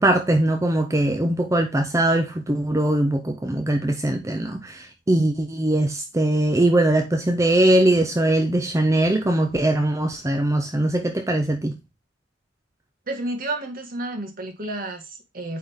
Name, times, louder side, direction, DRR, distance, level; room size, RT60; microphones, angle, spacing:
voice 1, 0.0-11.8, right 1 dB, 15° right, 0.6 m, -21 dB
voice 2, 13.1-15.6, right 2 dB, 50° right, 1.6 m, -31 dB
8.8 x 3.8 x 3.5 m
head